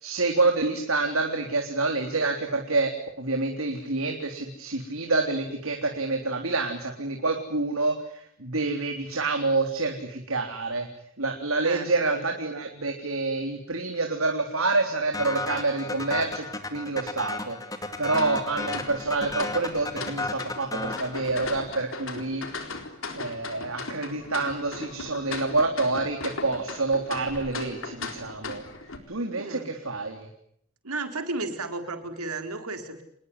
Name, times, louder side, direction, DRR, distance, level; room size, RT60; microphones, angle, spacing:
voice 1, 0.0-2.9 3.2-7.9 8.4-10.9 11.2-16.5 16.7-17.6 18.0-22.4 23.1-28.6 29.1-30.3, right 3 dB, 70° right, 3 dB, 3.6 m, -27 dB
voice 2, 11.6-12.3 29.3-29.7 30.8-33.0, right 3 dB, 90° right, 6 dB, 4.2 m, -34 dB
sound 1, 15.1-21.8, left 2 dB, 15° left, 2.5 m, -33 dB
sound 2, 18.1-29.0, left 3 dB, 65° left, 4.1 m, -38 dB
29.0 x 21.0 x 9.8 m, 0.71 s
head